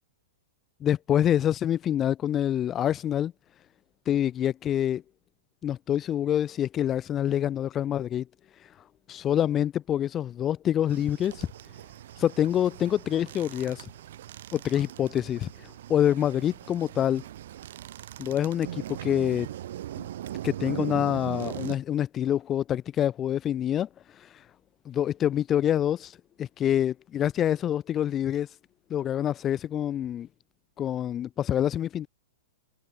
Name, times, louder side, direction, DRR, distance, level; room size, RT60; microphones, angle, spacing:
voice 1, 0.8-3.3 4.1-5.0 5.6-8.2 9.1-11.5 12.2-13.9 14.5-17.2 18.2-19.5 20.0-20.1 20.4-23.9 24.2-24.3 24.9-28.5 28.9-30.3 30.8-32.1, left 10 dB, 20° left, 0.5 m, -26 dB
sound 1, 10.9-21.8, right 12 dB, 65° right, 4.9 m, -40 dB
hypercardioid pair, 155°, 0 cm